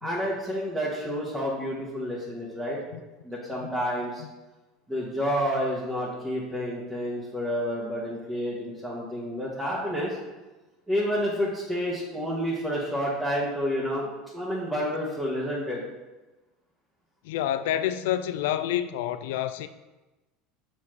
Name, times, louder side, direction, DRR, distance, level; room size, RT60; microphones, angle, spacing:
voice 1, 0.0-2.8 3.2-4.2 4.9-10.2 10.9-15.8, equal, 10° right, 1.6 m, -29 dB
voice 2, 17.2-19.7, left 11 dB, 70° left, 0.3 m, -28 dB
7.0 x 4.3 x 3.3 m
hypercardioid pair, 80°, 0 cm